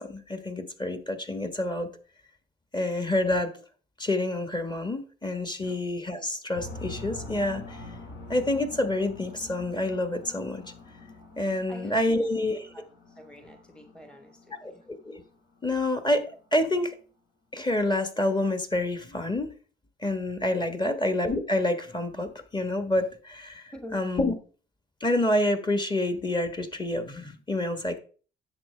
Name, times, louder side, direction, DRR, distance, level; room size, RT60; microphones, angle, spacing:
voice 1, 0.0-1.9 2.7-3.5 4.0-7.9 8.3-10.6 11.4-12.7 14.6-15.2 15.6-16.2 16.5-16.9 17.5-19.5 20.0-24.3 25.0-28.0, left 1 dB, 20° left, 8 dB, 1.4 m, -28 dB
sound 1, 6.5-16.9, left 2 dB, 70° left, 2.6 m, -45 dB
voice 2, 11.7-12.8 13.2-14.8 20.8-21.0 23.7-24.0, equal, 5° left, 7 dB, 1.1 m, -46 dB
10.5 x 7.3 x 3.3 m, 0.39 s
cardioid pair, 90°, 20 cm